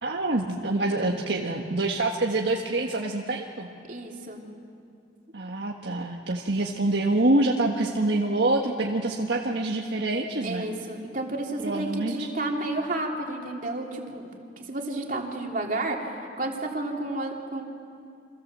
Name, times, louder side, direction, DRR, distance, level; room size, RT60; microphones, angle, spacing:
voice 1, 0.0-3.7 5.3-10.7 11.6-12.3, right 2 dB, 65° right, 0 dB, 1.6 m, -26 dB
voice 2, 3.9-4.4 10.4-14.3 14.6-16.0 16.4-17.6, right 2 dB, 45° right, 1 dB, 3.1 m, -31 dB
29.5 x 26.0 x 7.6 m, 2.5 s
head